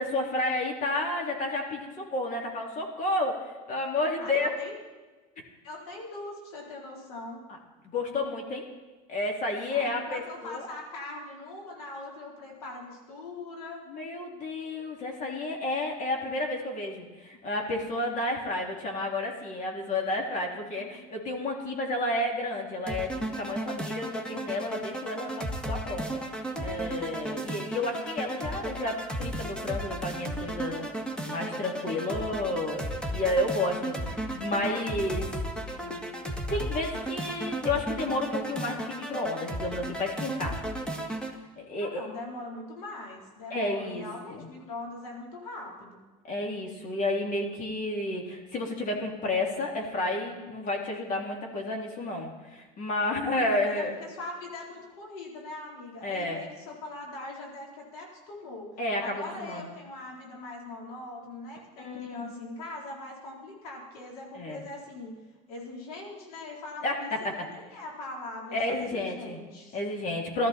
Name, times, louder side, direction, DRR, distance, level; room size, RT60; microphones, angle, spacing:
voice 1, 0.0-4.5 7.9-8.7 9.1-10.7 13.9-26.2 26.6-35.3 35.8-36.0 36.5-40.6 41.6-42.1 43.5-44.0 44.3-44.5 46.3-54.0 56.0-56.4 58.8-59.7 61.8-62.3 64.3-64.6 66.8-67.5 68.5-69.4 69.7-70.5, left 2 dB, 45° left, 1 dB, 3.2 m, -31 dB
voice 2, 4.2-4.7 5.6-7.4 9.7-13.8 20.8-21.0 41.7-46.0 53.3-58.7 59.0-65.1 65.5-67.1 67.4-69.8, left 2 dB, 90° left, -2 dB, 4.0 m, -41 dB
sound 1, 22.9-41.3, right 1 dB, 5° left, 1.6 m, -34 dB
16.5 x 13.5 x 4.4 m, 1.2 s
supercardioid pair, 100°, 19 cm